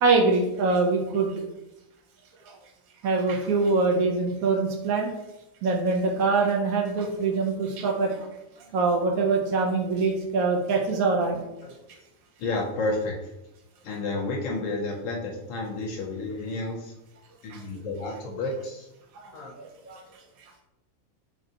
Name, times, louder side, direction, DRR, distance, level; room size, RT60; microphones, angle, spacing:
voice 1, 0.0-1.3 2.5-2.6 3.0-5.1 5.6-8.3 8.7-11.4 17.5-17.6 19.1-19.3 19.5-20.0, right 3 dB, 85° right, 0 dB, 1.1 m, -24 dB
voice 2, 12.4-13.1 13.8-16.9 17.4-18.9 19.3-19.9, left 2 dB, 70° left, 0 dB, 0.9 m, -31 dB
3.8 x 3.3 x 2.7 m, 0.93 s
omnidirectional pair, 1.5 m